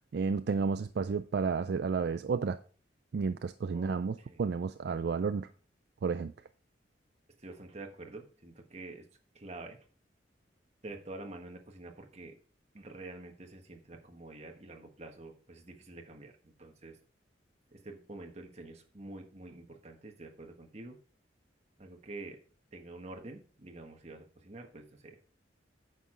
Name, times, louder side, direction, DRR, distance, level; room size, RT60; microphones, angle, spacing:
voice 1, 0.1-2.6 3.1-5.5 6.0-6.3, right 5 dB, 60° right, 0.4 m, -31 dB
voice 2, 3.7-4.4 7.4-9.1 9.3-9.8 10.8-12.4 12.7-17.0 17.7-21.0 21.8-22.4 22.7-25.2, right 2 dB, 35° right, 1.3 m, -47 dB
9.3 x 6.5 x 3.8 m
head